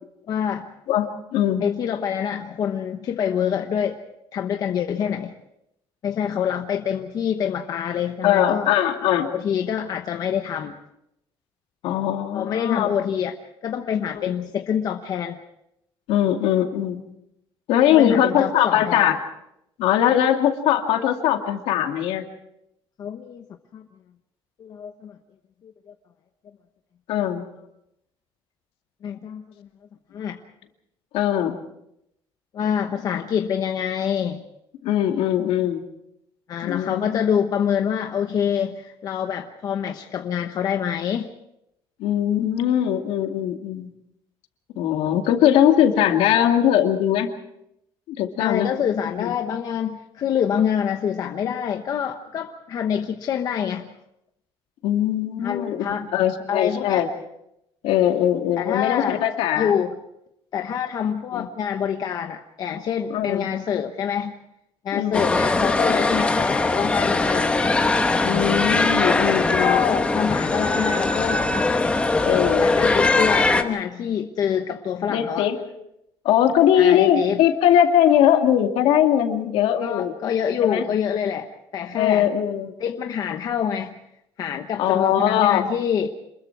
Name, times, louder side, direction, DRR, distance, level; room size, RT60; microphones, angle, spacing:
voice 1, 0.3-0.7 1.6-4.0 4.3-5.3 6.0-8.7 9.3-10.8 12.3-13.3 13.6-15.4 17.9-19.1 23.0-23.4 23.7-23.9 24.6-25.2 25.6-25.7 29.0-29.7 30.1-30.4 32.5-34.4 36.5-41.3 48.4-53.9 55.4-56.1 56.5-57.0 58.6-59.2 59.6-59.9 60.5-64.3 64.8-67.6 69.6-71.5 72.6-75.5 76.8-77.4 79.8-82.3 82.8-83.9 84.4-86.1, left 8 dB, 40° left, 5 dB, 1.0 m, -26 dB
voice 2, 0.9-1.6 8.2-9.3 11.8-12.9 14.1-14.3 16.1-17.0 17.7-19.2 19.8-22.2 27.1-27.4 31.1-31.6 34.8-35.8 36.6-37.2 42.0-43.9 44.8-47.3 48.1-48.7 49.2-49.3 54.8-57.1 57.8-59.7 61.3-61.5 63.1-63.5 64.9-65.3 68.2-69.8 72.3-72.7 75.1-75.7 76.2-80.1 80.6-80.8 81.9-82.7 84.8-85.7, left 10 dB, 90° left, 4 dB, 2.3 m, -20 dB
sound 1, 65.1-73.6, left 3 dB, 10° left, 1.2 m, -21 dB
27.0 x 21.5 x 4.7 m, 0.81 s
cardioid pair, 175°, 10 cm